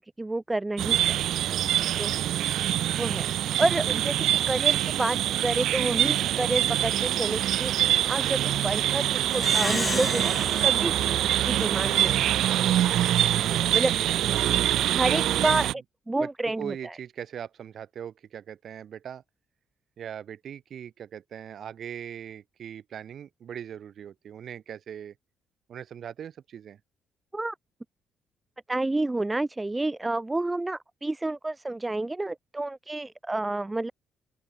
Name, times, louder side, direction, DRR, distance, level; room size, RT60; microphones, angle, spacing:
voice 1, 0.2-1.2 2.0-2.2 3.0-3.3 3.6-4.2 4.5-7.7 8.0-8.4 8.6-10.3 10.6-10.9 11.4-12.4 13.7-13.9 14.9-15.7 16.1-16.7 27.3-27.5 28.7-33.9, right 2 dB, 15° right, 1.0 m, -29 dB
sound 1, 0.8-15.7, right 12 dB, 80° right, 0.3 m, -25 dB
voice 2, 3.5-3.9 10.8-11.0 13.5-14.6 15.1-15.6 16.2-19.2 20.0-25.1 25.7-26.8, right 9 dB, 60° right, 5.5 m, -39 dB
Plucked string instrument, 9.3-12.1, left 3 dB, 20° left, 1.2 m, -34 dB
open air
cardioid pair, 90°, 0 cm